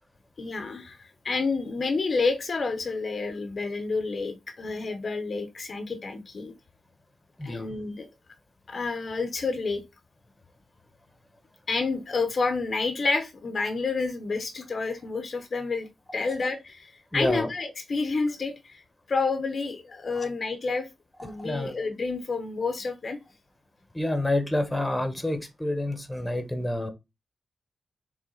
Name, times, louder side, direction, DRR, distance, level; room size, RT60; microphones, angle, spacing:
voice 1, 0.4-6.5 7.4-8.1 8.7-9.8 11.7-20.9 21.2-23.2, left 4 dB, 40° left, 0.9 m, -29 dB
voice 2, 17.1-17.5 20.1-20.3 21.2-21.7 23.9-26.9, left 1 dB, 5° left, 1.2 m, -28 dB
6.7 x 3.7 x 3.9 m
wide cardioid pair, 170°, 0 cm